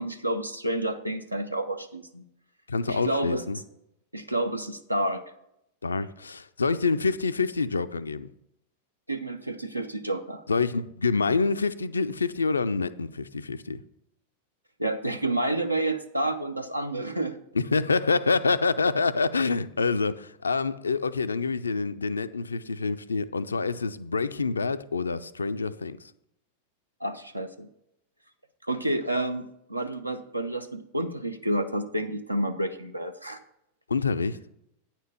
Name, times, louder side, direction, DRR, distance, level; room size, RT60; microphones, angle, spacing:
voice 1, 0.0-2.2 2.9-3.4 4.1-5.2 9.1-10.4 14.8-17.4 27.0-27.7 28.6-33.4, right 1 dB, 85° right, 0.4 m, -29 dB
voice 2, 2.7-3.6 5.8-8.3 10.5-13.8 17.6-26.0 33.9-34.4, left 4 dB, 75° left, 0.3 m, -27 dB
9.2 x 4.4 x 6.8 m
figure-of-eight pair, 90°, 0 cm